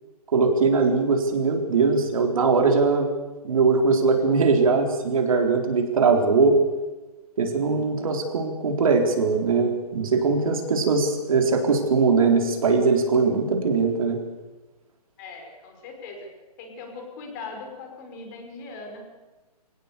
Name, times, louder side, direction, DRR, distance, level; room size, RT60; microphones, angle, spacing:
voice 1, 0.3-3.1 3.4-6.6 7.4-14.2, right 4 dB, 55° right, 3 dB, 4.1 m, -21 dB
voice 2, 15.2-16.2 16.6-19.0, left 4 dB, 25° left, 3 dB, 5.5 m, -39 dB
24.5 x 18.0 x 6.9 m, 1.2 s
hypercardioid pair, 160°, 21 cm